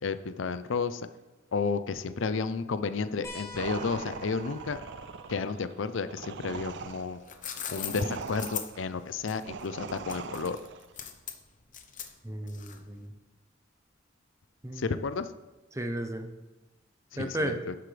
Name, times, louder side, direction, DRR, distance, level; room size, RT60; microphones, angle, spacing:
voice 1, 0.0-1.1 1.5-4.8 5.3-7.2 7.7-10.6 14.7-15.3 17.1-17.7, left 4 dB, 75° left, 12 dB, 0.5 m, -32 dB
sound 1, 3.2-8.3 9.8-9.9 11.6-11.7, left 3 dB, 15° left, 3.5 m, -50 dB
sound 2, 3.5-10.9, right 6 dB, 60° right, 0.4 m, -41 dB
sound 3, 7.0-13.0, left 9 dB, 40° left, 0.9 m, -40 dB
voice 2, 12.2-13.1 14.6-14.9 15.7-16.3 17.2-17.6, right 1 dB, 15° right, 6 dB, 0.8 m, -34 dB
11.5 x 9.8 x 3.4 m, 1.1 s
head